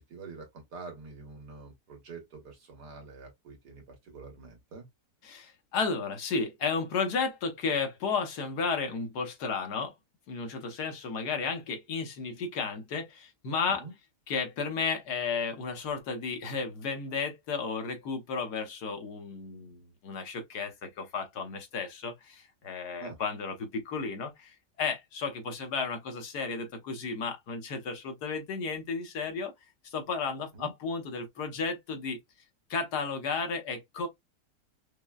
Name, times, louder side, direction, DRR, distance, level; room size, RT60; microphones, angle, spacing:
voice 1, 0.0-4.9 13.8-13.9 23.0-23.2 30.5-30.7, right 4 dB, 80° right, 1.9 m, -46 dB
voice 2, 5.2-9.9 10.3-13.9 14.3-29.5 29.8-32.2 32.7-34.1, left 5 dB, 75° left, 1.5 m, -33 dB
5.2 x 2.1 x 2.3 m
omnidirectional pair, 1.7 m